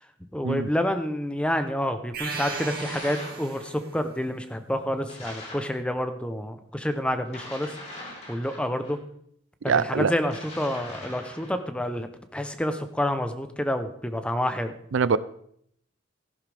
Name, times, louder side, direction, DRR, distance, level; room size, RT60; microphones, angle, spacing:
voice 1, 0.3-7.7 8.3-9.0 9.6-14.7, left 1 dB, 5° left, 8 dB, 0.8 m, -28 dB
sound 1, 2.1-4.0, right 4 dB, 45° right, 2.6 m, -35 dB
sound 2, 2.8-3.5 5.1-5.7 7.3-9.0 10.2-11.6, left 1 dB, 35° left, 4.8 m, -41 dB
voice 2, 9.7-10.1 14.9-15.2, right 5 dB, 85° right, 17 dB, 0.5 m, -23 dB
14.5 x 11.5 x 3.5 m, 0.68 s
head